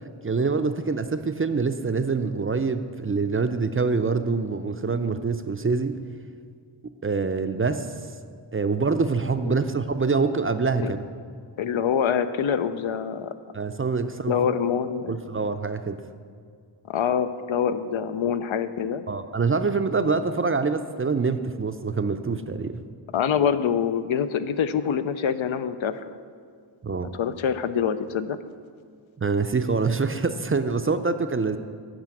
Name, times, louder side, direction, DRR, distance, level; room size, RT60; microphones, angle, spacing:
voice 1, 0.2-6.0 7.0-7.9 8.5-11.0 13.5-14.4 15.1-16.0 19.1-22.8 26.8-27.1 29.2-31.6, right 4 dB, 30° right, 9 dB, 0.4 m, -25 dB
voice 2, 11.6-13.3 14.3-15.2 16.9-19.0 23.1-26.0 26.9-28.4, left 7 dB, 85° left, 11 dB, 0.6 m, -25 dB
9.0 x 5.0 x 7.6 m, 2.1 s
wide cardioid pair, 80°, 46 cm